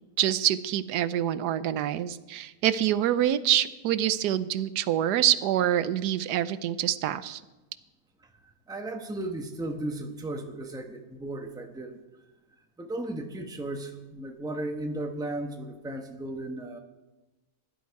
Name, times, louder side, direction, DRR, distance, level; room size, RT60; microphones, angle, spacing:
voice 1, 0.2-7.4, right 11 dB, 85° right, 15 dB, 1.2 m, -26 dB
voice 2, 8.7-12.0 12.8-16.8, right 1 dB, 5° right, 4 dB, 0.8 m, -35 dB
16.0 x 11.5 x 4.7 m, 1.1 s
omnidirectional pair, 1.7 m